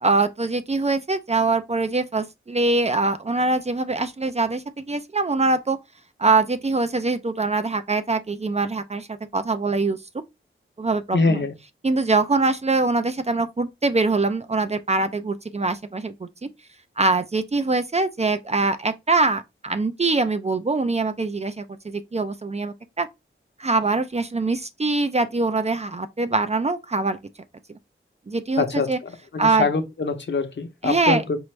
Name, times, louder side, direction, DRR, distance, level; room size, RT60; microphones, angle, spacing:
voice 1, 0.0-5.8 6.2-10.0 10.8-11.4 11.8-16.1 16.4-16.5 17.0-23.1 23.6-27.2 27.7-27.8 28.3-29.0 29.4-29.7 30.8-31.2, right 3 dB, 30° right, 0.4 m, -23 dB
voice 2, 11.1-11.5 28.6-31.4, left 4 dB, 60° left, 0.8 m, -24 dB
4.6 x 2.5 x 3.2 m
wide cardioid pair, 95°, 21 cm